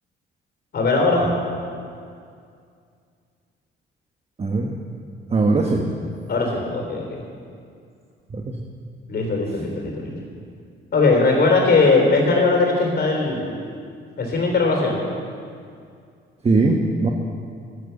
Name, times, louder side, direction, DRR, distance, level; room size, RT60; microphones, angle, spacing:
voice 1, 0.7-1.2 6.3-7.0 9.1-10.1 10.9-13.5 14.2-15.0, left 3 dB, 55° left, 1 dB, 3.6 m, -19 dB
voice 2, 4.4-4.7 5.3-5.8 8.3-8.6 16.4-17.1, right 3 dB, 30° right, 2 dB, 1.2 m, -20 dB
11.0 x 10.5 x 7.0 m, 2.3 s
cardioid pair, 90°, 20 cm